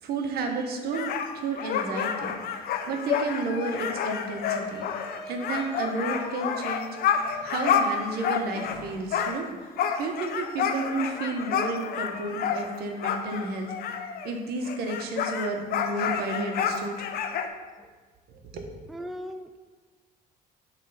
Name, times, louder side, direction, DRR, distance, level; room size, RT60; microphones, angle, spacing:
voice 1, 0.0-2.4 2.9-4.9 5.3-9.5 10.0-13.7 14.2-16.9 18.5-18.7, right 3 dB, 65° right, 3 dB, 1.1 m, -32 dB
sound 1, 0.9-8.8 9.1-14.4 14.6-17.5, left 7 dB, 65° left, 0.6 m, -29 dB
sound 2, 2.8-2.9 3.1-8.3 8.6-9.4, right 2 dB, 30° right, 2.0 m, -48 dB
voice 2, 18.9-19.6, equal, ahead, 7 dB, 0.3 m, -39 dB
7.4 x 3.3 x 5.6 m, 1.3 s
cardioid pair, 110°, 17 cm